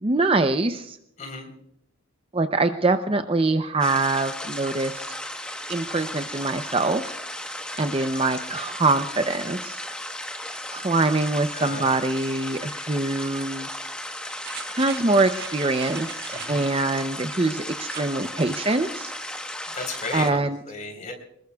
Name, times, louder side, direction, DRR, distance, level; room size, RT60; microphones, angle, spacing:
voice 1, 0.0-1.0 2.3-5.0 5.7-7.2 7.4-7.5 7.8-9.8 10.7-13.7 14.8-19.1 20.1-20.6, right 2 dB, 25° right, 8 dB, 0.6 m, -24 dB
voice 2, 1.2-1.5 11.5-11.9 16.3-16.7 19.7-21.1, left 3 dB, 35° left, 3 dB, 3.9 m, -34 dB
sound 1, 3.8-20.3, left 1 dB, 5° left, 1.1 m, -35 dB
sound 2, 14.4-16.8 17.8-18.2 18.6-18.7, right 8 dB, 50° right, 1.3 m, -40 dB
25.5 x 21.0 x 2.3 m, 0.74 s
head